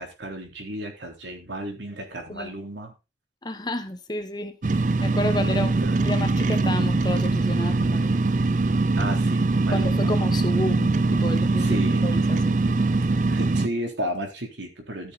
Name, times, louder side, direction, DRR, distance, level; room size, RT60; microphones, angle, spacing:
voice 1, 0.0-2.9 5.5-6.0 9.0-10.1 11.6-12.1 13.3-15.1, right 1 dB, 80° right, 3.7 m, -33 dB
voice 2, 3.4-5.7 6.0-8.2 9.7-12.5, left 1 dB, 20° left, 1.2 m, -31 dB
sound 1, 4.6-13.7, right 3 dB, 45° right, 0.5 m, -22 dB
14.0 x 6.9 x 4.1 m
head